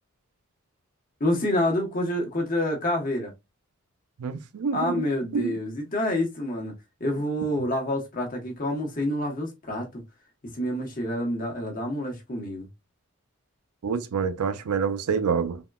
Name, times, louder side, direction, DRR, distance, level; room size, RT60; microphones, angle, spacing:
voice 1, 1.2-3.3 4.7-6.7 7.0-10.0 10.5-12.7, left 1 dB, 40° left, 0.9 m, -27 dB
voice 2, 4.2-5.0 5.3-5.6 13.8-15.6, right 6 dB, 85° right, 0.5 m, -27 dB
3.5 x 2.1 x 2.2 m
head